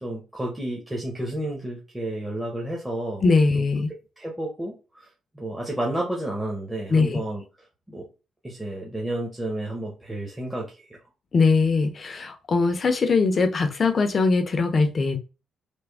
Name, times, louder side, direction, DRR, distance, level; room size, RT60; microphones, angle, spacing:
voice 1, 0.0-3.3 3.5-3.6 4.2-5.1 5.3-7.4 7.9-8.0 8.4-11.0, right 1 dB, 10° right, -2 dB, 1.0 m, -31 dB
voice 2, 3.2-3.9 6.9-7.2 11.3-15.2, left 4 dB, 40° left, 7 dB, 0.6 m, -21 dB
3.4 x 2.2 x 3.4 m, 0.31 s
cardioid pair, 90°, 0 cm